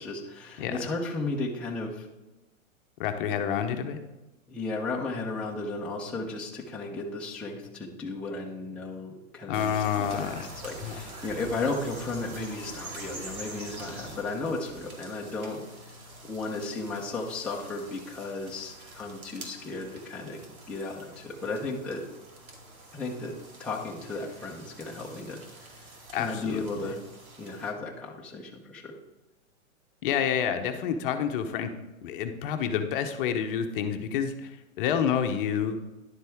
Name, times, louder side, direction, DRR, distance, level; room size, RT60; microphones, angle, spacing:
voice 1, 0.0-2.1 4.5-10.3 10.6-15.9 16.2-22.0 22.9-27.0 27.4-28.9, left 3 dB, 5° left, -3 dB, 0.7 m, -35 dB
voice 2, 3.0-4.0 9.5-10.5 10.8-11.0 26.1-26.6 30.0-31.7 32.0-34.5 34.8-35.8, left 8 dB, 40° left, 6 dB, 0.9 m, -28 dB
sound 1, 9.5-27.7, right 1 dB, 85° right, 2.3 m, -45 dB
11.0 x 7.4 x 3.5 m, 1.0 s
hypercardioid pair, 130°, 42 cm